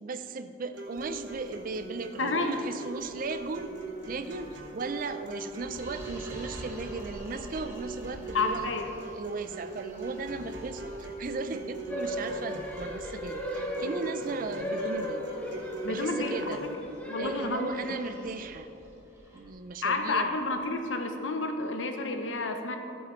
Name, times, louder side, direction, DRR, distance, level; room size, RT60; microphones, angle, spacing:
voice 1, 0.0-3.7 4.1-8.7 9.1-15.2 15.9-16.6 17.2-18.7 19.3-20.3, right 3 dB, 45° right, 10 dB, 0.4 m, -36 dB
sound 1, 0.7-16.7, right 2 dB, 70° right, 1.3 m, -41 dB
sound 2, 1.0-20.6, equal, 15° right, 1.2 m, -49 dB
voice 2, 2.2-2.5 8.3-8.9 15.8-16.6 17.1-17.7 19.8-22.8, left 3 dB, 80° left, 5 dB, 0.8 m, -30 dB
sound 3, 11.9-18.5, equal, 10° left, 1.0 m, -36 dB
13.5 x 8.0 x 3.1 m, 2.8 s
head